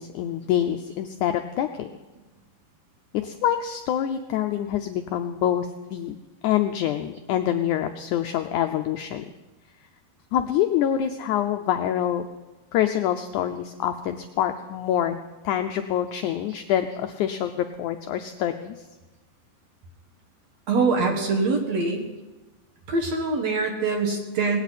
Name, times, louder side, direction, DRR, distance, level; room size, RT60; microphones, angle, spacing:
voice 1, 0.0-1.9 3.1-6.2 6.4-9.3 10.3-12.3 12.7-15.2 15.4-18.9, left 10 dB, 80° left, 6 dB, 1.7 m, -26 dB
voice 2, 20.7-22.1 22.9-24.6, right 3 dB, 55° right, 3 dB, 2.5 m, -24 dB
19.0 x 18.0 x 4.2 m, 1.1 s
omnidirectional pair, 4.1 m